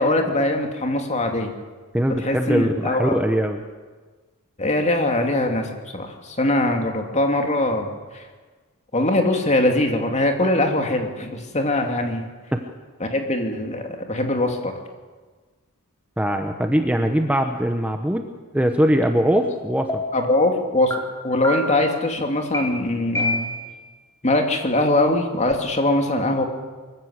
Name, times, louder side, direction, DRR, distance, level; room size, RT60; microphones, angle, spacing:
voice 1, 0.0-1.5 2.2-3.2 4.6-8.2 8.9-12.3 13.0-14.7 20.1-20.9 21.2-23.5 24.2-26.4, left 1 dB, 30° left, 3 dB, 2.6 m, -22 dB
voice 2, 1.9-3.6 12.5-12.6 16.2-18.3 18.5-19.9, equal, 5° right, 5 dB, 1.0 m, -21 dB
sound 1, 19.4-19.5 19.9-20.3 20.9-21.0 21.4-21.9 22.5-22.6 23.1-23.8, left 1 dB, 15° left, 3.9 m, -26 dB
24.0 x 14.5 x 8.1 m, 1.4 s
head